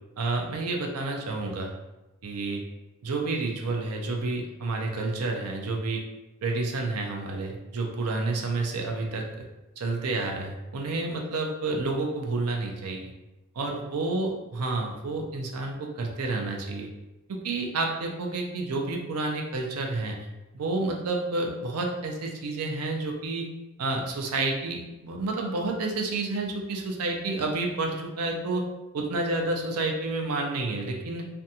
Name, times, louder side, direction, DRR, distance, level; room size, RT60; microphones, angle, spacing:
voice 1, 0.2-1.7 2.2-2.6 3.0-6.0 6.4-9.4 9.8-13.1 13.5-16.9 17.3-20.3 20.5-23.5 23.8-28.7 28.9-31.3, right 3 dB, 90° right, 2 dB, 0.5 m, -30 dB
2.5 x 2.2 x 2.7 m, 1.0 s
head